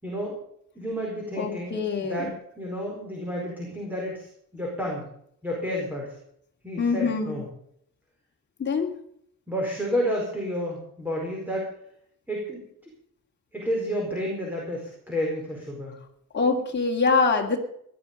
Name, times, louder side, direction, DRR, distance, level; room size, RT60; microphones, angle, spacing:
voice 1, 0.0-0.4 0.7-2.3 2.6-5.1 5.4-6.2 6.6-7.4 9.5-11.7 12.3-12.6 13.5-16.0, equal, 5° right, -2 dB, 4.7 m, -30 dB
voice 2, 1.4-2.3 6.8-7.4 8.6-8.9 16.3-17.6, left 4 dB, 30° left, 1 dB, 2.8 m, -24 dB
18.5 x 11.5 x 5.3 m, 0.68 s
cardioid pair, 165°, 34 cm